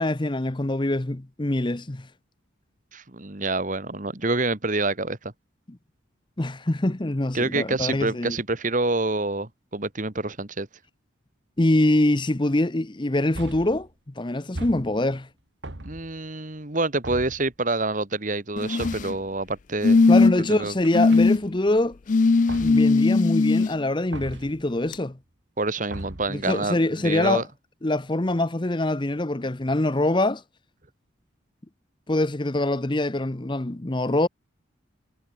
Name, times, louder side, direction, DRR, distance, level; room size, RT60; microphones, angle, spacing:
voice 1, 0.0-2.1 5.7-5.8 6.4-8.4 11.6-13.9 14.2-15.3 20.1-22.0 22.6-25.2 26.3-27.4 27.8-30.4 32.1-34.3, left 1 dB, 25° left, 0.8 m, -24 dB
voice 2, 2.9-5.3 7.3-10.7 15.8-20.0 20.5-20.7 25.6-27.4, right 2 dB, 40° right, 1.9 m, -27 dB
sound 1, 13.3-13.9 14.6-15.2 15.6-16.3 17.0-17.5 18.8-19.3 20.8-21.6 22.5-23.0 24.1-24.6 25.9-26.4, right 1 dB, 60° right, 2.1 m, -38 dB
sound 2, 18.6-19.1 19.8-20.5 20.9-21.4 22.1-23.7 24.9-25.0, left 3 dB, 40° left, 0.4 m, -19 dB
head